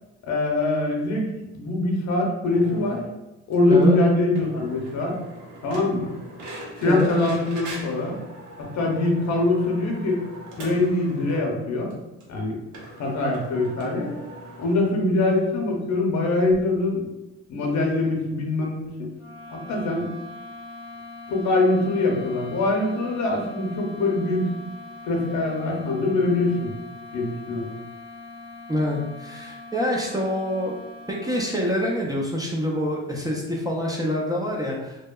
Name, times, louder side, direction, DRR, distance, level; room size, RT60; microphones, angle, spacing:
voice 1, 0.3-1.3 1.5-3.0 3.5-5.2 5.6-6.1 6.8-8.2 8.6-10.2 10.6-12.0 12.3-12.6 13.0-14.1 14.6-17.1 17.5-19.1 19.5-20.1 21.3-24.5 25.0-26.7 27.1-27.7, left 2 dB, 65° left, 0 dB, 0.7 m, -23 dB
sound 1, 2.5-3.1 3.5-3.6 3.8-3.9 4.3-11.5 11.9-12.0 12.2-12.3 12.7-14.8, right 1 dB, 80° right, 0.7 m, -41 dB
sound 2, 19.1-31.9, left 2 dB, 5° left, 0.8 m, -42 dB
voice 2, 28.7-30.8 31.1-35.1, left 1 dB, 15° right, -2 dB, 0.4 m, -26 dB
2.7 x 2.1 x 2.2 m, 0.98 s
cardioid pair, 90°, 30 cm